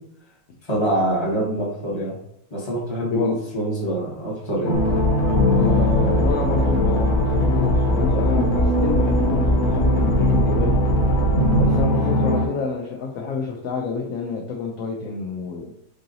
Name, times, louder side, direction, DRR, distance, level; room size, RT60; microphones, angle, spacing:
voice 1, 0.7-2.1 2.5-4.8 5.3-5.4, right 1 dB, 20° left, -6 dB, 1.1 m, -25 dB
sound 1, 4.6-12.5, equal, 85° left, 1.4 m, -20 dB
sound 2, 4.7-11.8, left 3 dB, 35° left, 0.6 m, -24 dB
voice 2, 5.5-10.8 11.6-15.7, left 4 dB, 70° left, 1 dB, 0.8 m, -29 dB
4.7 x 2.7 x 2.6 m, 0.74 s
omnidirectional pair, 1.8 m